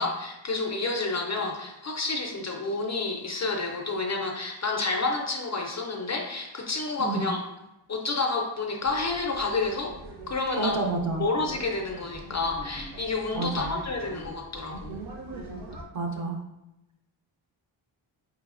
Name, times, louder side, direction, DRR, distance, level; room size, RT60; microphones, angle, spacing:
voice 1, 0.0-7.4 7.9-10.0 10.3-10.8 11.2-15.0, left 3 dB, 35° left, 1 dB, 0.4 m, -29 dB
sound 1, 8.8-15.8, right 1 dB, 70° right, 1.0 m, -43 dB
voice 2, 10.6-11.2 13.3-13.7 15.9-16.4, right 3 dB, 40° right, 2 dB, 0.5 m, -29 dB
4.6 x 3.0 x 2.4 m, 0.93 s
wide cardioid pair, 145°, 48 cm